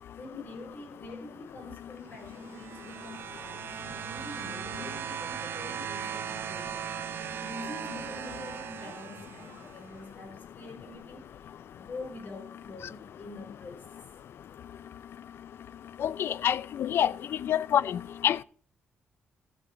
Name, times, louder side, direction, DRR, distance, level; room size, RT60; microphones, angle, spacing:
voice 1, 0.2-6.9 7.4-11.5 11.7-13.9, left 2 dB, 50° left, 4.1 m, -45 dB
sound 1, 2.1-9.9 10.9-11.0, right 9 dB, 65° right, 0.7 m, -38 dB
voice 2, 16.0-17.1 17.4-18.4, left 10 dB, 65° left, 0.4 m, -27 dB
13.5 x 7.2 x 4.7 m
cardioid pair, 70°, 4 cm